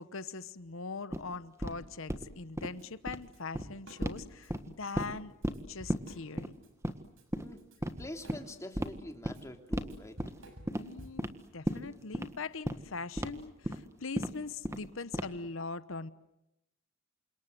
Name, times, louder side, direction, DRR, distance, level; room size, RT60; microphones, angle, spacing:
voice 1, 0.0-5.3 5.7-6.6 10.8-11.2 11.5-16.1, left 4 dB, 70° left, 1.0 m, -41 dB
sound 1, 1.1-1.2 1.6-1.7 2.1-2.3 2.6-2.7 3.0-3.2 3.5-3.7 4.0-4.2 4.5-5.1 5.4-5.6 5.9-6.0 6.4-6.5 6.8-7.0 7.3-7.4 7.8-7.9 8.3-8.4 8.8-8.9 9.2-9.4 9.7-9.9 10.2-10.4 10.7-10.8 11.2-11.3 11.7-11.8 12.1-12.3 12.7-12.8 13.2-13.3 13.6-13.8 14.2-14.3 14.6-14.9 15.1-15.5, equal, 15° right, 1.5 m, -33 dB
Drum kit / Drum, 2.8-2.9 3.2-4.5 4.9-5.1 5.4-6.7 7.0-11.4, right 1 dB, 65° right, 6.3 m, -53 dB
voice 2, 8.0-10.2, left 1 dB, 15° left, 2.9 m, -45 dB
29.0 x 26.5 x 7.8 m
head